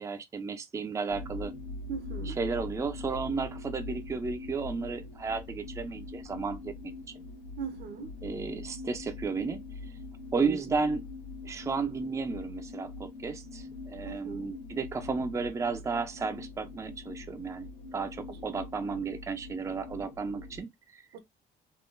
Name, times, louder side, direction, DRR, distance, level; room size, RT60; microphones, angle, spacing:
voice 1, 0.0-1.5 2.3-7.0 8.2-9.6 10.3-11.0 11.4-21.0, right 4 dB, 20° right, 0.4 m, -33 dB
sound 1, 1.1-20.6, left 3 dB, 70° left, 1.0 m, -43 dB
voice 2, 1.9-2.4 7.6-8.1 10.3-10.8 14.0-14.5 18.3-18.4 21.1-21.2, right 6 dB, 70° right, 0.9 m, -39 dB
3.6 x 2.3 x 2.5 m
cardioid pair, 110°, 17 cm